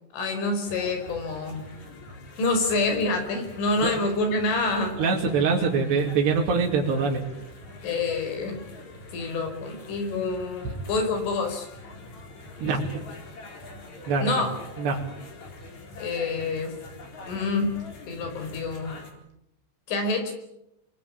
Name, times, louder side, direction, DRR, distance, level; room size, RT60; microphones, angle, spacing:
voice 1, 0.1-1.6 2.4-5.0 7.8-8.6 9.1-11.7 14.2-14.6 16.0-16.7 17.3-17.7 18.1-18.9 19.9-20.3, left 3 dB, 75° left, 6 dB, 7.3 m, -27 dB
sound 1, 0.6-19.1, left 2 dB, 40° left, 4.8 m, -44 dB
voice 2, 5.0-7.2 12.6-12.8 14.1-14.4 14.8-15.0, right 5 dB, 60° right, -3 dB, 4.7 m, -24 dB
27.0 x 22.5 x 8.8 m, 0.85 s
omnidirectional pair, 5.6 m